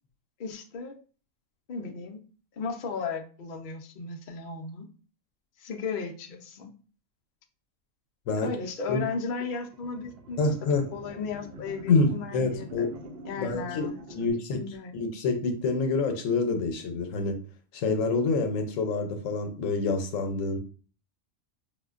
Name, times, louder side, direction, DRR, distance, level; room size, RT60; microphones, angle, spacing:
voice 1, 0.4-0.9 1.7-2.2 2.6-4.9 5.6-6.7 8.4-10.4 10.9-12.9 13.2-14.0 14.5-14.9, left 5 dB, 60° left, 2 dB, 0.5 m, -35 dB
sound 1, 9.5-14.3, equal, 60° right, 0.7 m, -45 dB
voice 2, 10.4-10.9 11.9-12.9 13.4-14.6 14.9-17.4 17.7-20.6, left 3 dB, 80° left, 5 dB, 1.0 m, -27 dB
4.8 x 2.2 x 2.4 m, 0.38 s
omnidirectional pair, 1.4 m